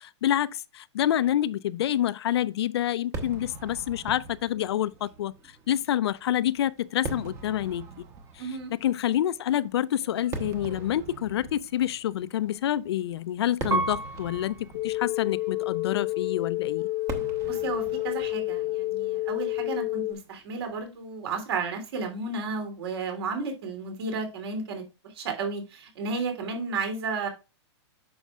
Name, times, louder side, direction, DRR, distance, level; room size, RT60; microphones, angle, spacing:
voice 1, 0.0-5.3 5.7-7.8 8.7-16.9, left 11 dB, 60° left, 0.5 m, -27 dB
Fireworks, 3.1-20.5, right 3 dB, 20° right, 1.0 m, -43 dB
voice 2, 8.4-8.7 17.4-27.3, right 4 dB, 60° right, 3.1 m, -33 dB
Piano, 13.7-16.5 17.1-17.8, right 3 dB, 80° right, 2.1 m, -35 dB
sound 1, 14.7-20.1, left 18 dB, 30° left, 0.8 m, -29 dB
9.3 x 6.2 x 2.4 m
hypercardioid pair, 165°, 15 cm